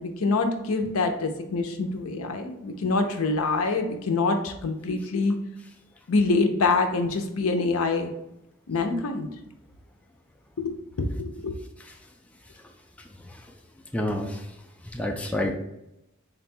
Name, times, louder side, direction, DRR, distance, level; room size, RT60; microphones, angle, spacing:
voice 1, 0.0-5.4 6.1-8.1 8.7-9.3 10.6-11.6, left 3 dB, 80° left, 5 dB, 0.6 m, -25 dB
voice 2, 13.0-13.4 13.9-14.5 14.8-15.6, left 1 dB, 5° left, 2 dB, 0.3 m, -30 dB
4.0 x 2.2 x 4.2 m, 0.86 s
head